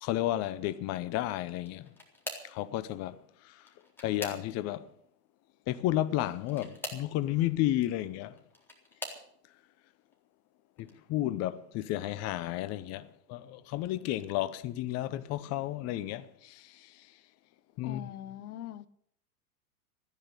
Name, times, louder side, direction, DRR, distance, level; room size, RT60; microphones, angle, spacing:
voice 1, 0.0-1.8 2.5-3.2 4.0-4.9 5.7-8.4 10.8-16.7 17.8-18.0, left 14 dB, 35° left, 0.8 m, -32 dB
sound 1, 1.6-2.6 3.5-4.8 6.4-7.1 8.2-9.3 10.0-10.4 10.8-10.9 12.3-12.4, left 1 dB, 5° left, 3.9 m, -43 dB
voice 2, 17.8-18.9, left 12 dB, 70° left, 1.0 m, -42 dB
14.5 x 10.5 x 8.4 m
hypercardioid pair, 105°, 46 cm